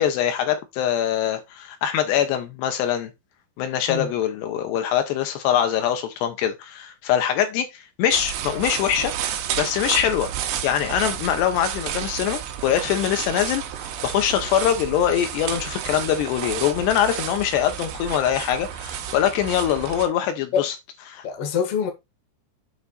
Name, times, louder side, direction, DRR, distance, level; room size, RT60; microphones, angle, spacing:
voice 1, 0.0-3.1 3.6-9.1 9.6-10.3 10.6-20.7 21.1-21.2, left 10 dB, 75° left, 2.9 m, -23 dB
sound 1, 8.1-20.1, right 10 dB, 75° right, 2.9 m, -31 dB
voice 2, 21.2-21.9, left 7 dB, 55° left, 1.8 m, -24 dB
8.4 x 4.0 x 4.1 m
omnidirectional pair, 5.1 m